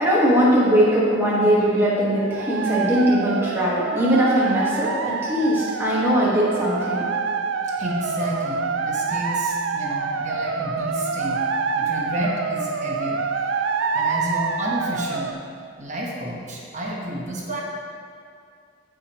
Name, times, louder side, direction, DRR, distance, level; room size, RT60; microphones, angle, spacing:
voice 1, 0.0-7.1, equal, 10° right, -8 dB, 1.7 m, -20 dB
sound 1, 2.1-15.3, right 5 dB, 70° right, 0.4 m, -26 dB
voice 2, 7.8-11.4 11.7-13.2 13.9-15.3 15.8-17.6, equal, 35° right, -3 dB, 1.2 m, -30 dB
14.0 x 5.1 x 3.1 m, 2.3 s
head